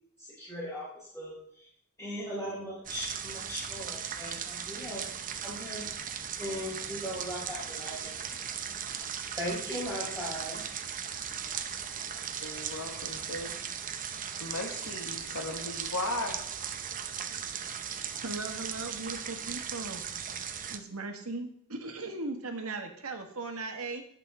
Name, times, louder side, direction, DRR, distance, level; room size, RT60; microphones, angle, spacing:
voice 1, 0.2-1.7 2.0-5.0 5.4-5.9 6.4-8.1 9.4-10.6, equal, 15° left, -9 dB, 4.4 m, -38 dB
sound 1, 2.8-20.8, right 8 dB, 40° right, 0.8 m, -38 dB
voice 2, 12.2-13.6 14.4-16.4, left 2 dB, 80° left, 1 dB, 1.6 m, -37 dB
voice 3, 18.2-20.0 20.7-24.0, right 3 dB, 80° right, 4 dB, 1.7 m, -38 dB
18.0 x 6.6 x 3.7 m, 0.66 s
head